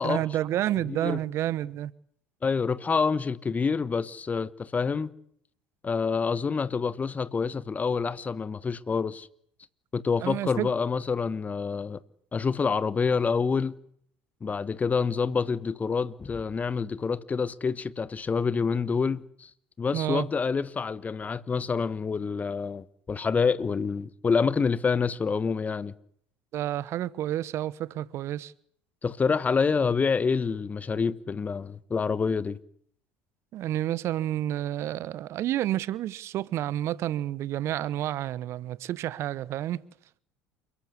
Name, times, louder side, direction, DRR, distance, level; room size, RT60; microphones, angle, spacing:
voice 1, 0.0-1.9 10.2-10.7 19.9-20.3 26.5-28.5 33.5-39.8, right 13 dB, 50° right, 1.0 m, -30 dB
voice 2, 0.9-1.2 2.4-5.1 5.8-9.3 9.9-12.0 12.3-13.7 14.4-19.5 19.8-25.9 29.0-32.6, left 5 dB, 25° left, 1.4 m, -27 dB
28.5 x 14.5 x 9.9 m
hypercardioid pair, 70°, 6 cm